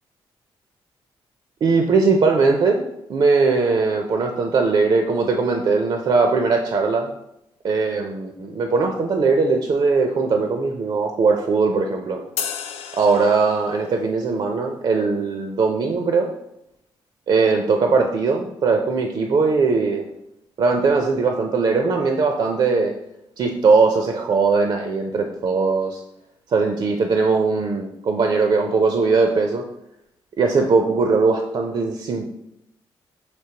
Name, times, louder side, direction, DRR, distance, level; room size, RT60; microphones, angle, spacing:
voice 1, 1.6-2.8 3.1-7.1 7.6-12.2 12.9-16.3 17.3-20.1 20.6-22.9 23.4-26.0 26.5-29.6 30.4-32.3, right 4 dB, 55° right, 4 dB, 0.5 m, -20 dB
sound 1, 12.4-14.0, left 8 dB, 85° left, 0.4 m, -32 dB
5.9 x 3.0 x 2.8 m, 0.82 s
cardioid pair, 70°, 10 cm